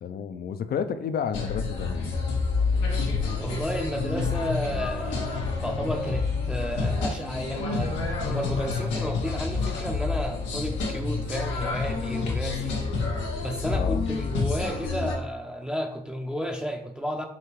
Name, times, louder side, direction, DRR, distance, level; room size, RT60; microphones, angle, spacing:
voice 1, 0.0-2.2 13.7-14.0, left 7 dB, 55° left, 11 dB, 0.4 m, -31 dB
sound 1, 1.3-15.2, left 4 dB, 90° left, 0.8 m, -28 dB
voice 2, 3.4-12.8 13.4-17.2, equal, 5° right, 3 dB, 0.5 m, -32 dB
5.2 x 2.7 x 3.0 m, 0.74 s
supercardioid pair, 55°, 19 cm